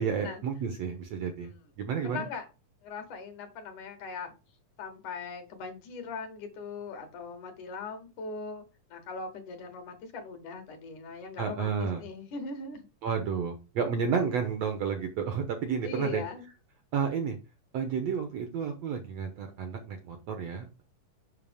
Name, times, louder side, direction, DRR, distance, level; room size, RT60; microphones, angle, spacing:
voice 1, 0.0-1.5 1.8-2.3 11.4-12.0 13.0-16.2 16.9-17.4 17.7-20.8, right 6 dB, 70° right, 5 dB, 1.7 m, -31 dB
voice 2, 1.2-1.6 2.0-2.5 2.8-4.3 4.8-8.6 8.9-12.9 15.8-16.5, left 4 dB, 65° left, 6 dB, 2.8 m, -40 dB
7.4 x 5.8 x 3.5 m, 0.30 s
omnidirectional pair, 3.9 m